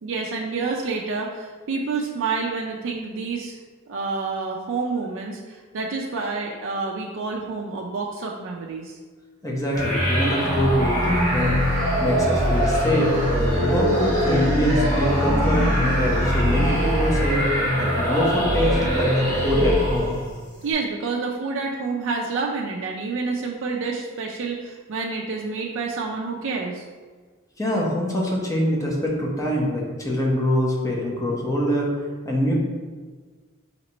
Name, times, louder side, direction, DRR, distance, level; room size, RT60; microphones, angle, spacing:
voice 1, 0.0-3.6 3.9-9.0 20.6-26.8, right 4 dB, 65° right, -1 dB, 0.4 m, -28 dB
voice 2, 9.4-11.6 12.0-13.1 13.7-17.5 17.8-20.2 27.6-31.9 32.2-32.5, equal, 15° left, -3 dB, 0.8 m, -24 dB
sound 1, 9.7-20.3, equal, 35° left, 1.5 m, -22 dB
4.0 x 2.9 x 4.3 m, 1.4 s
head